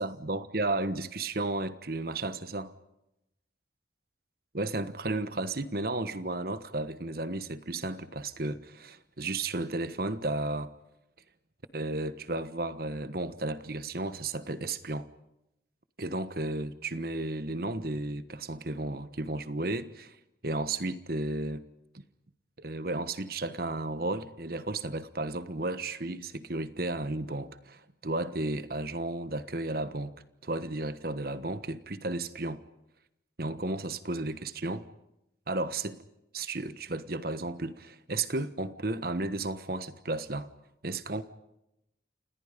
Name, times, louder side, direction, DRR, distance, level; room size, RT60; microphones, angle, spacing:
voice 1, 0.0-2.7 4.5-10.7 11.7-15.1 16.0-20.2 20.4-21.6 21.9-22.0 22.6-30.1 30.4-32.6 33.4-34.9 35.5-36.0 36.3-40.5 40.8-41.2, right 2 dB, 55° right, 1.3 m, -33 dB
29.5 x 28.0 x 5.2 m
head